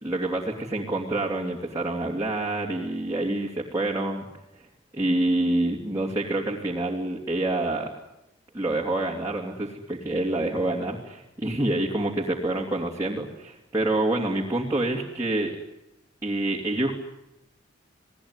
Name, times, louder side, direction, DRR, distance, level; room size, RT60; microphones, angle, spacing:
voice 1, 0.0-4.3 4.9-7.9 8.5-15.5 16.2-16.9, right 2 dB, 15° right, -3 dB, 2.9 m, -27 dB
29.0 x 19.0 x 9.9 m, 0.90 s
head